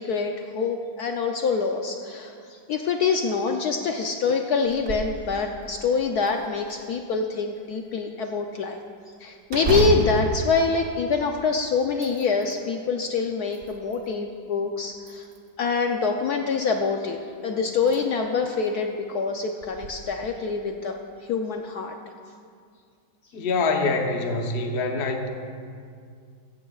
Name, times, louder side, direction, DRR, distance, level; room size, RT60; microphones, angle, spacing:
voice 1, 0.0-8.8 9.2-15.3 15.6-21.0 21.3-22.0, left 4 dB, 65° left, 4 dB, 1.0 m, -25 dB
sound 1, 4.7-5.2 5.6-5.7 6.3-7.1 9.5-11.5 11.9-12.6 13.2-14.1 15.0-15.7 17.1-17.2 17.8-18.0 18.5-18.6 19.6-19.9, right 2 dB, 40° right, 1.2 m, -30 dB
voice 2, 23.3-25.3, left 3 dB, 40° left, 3 dB, 0.9 m, -25 dB
16.0 x 15.0 x 2.4 m, 2.2 s
omnidirectional pair, 2.0 m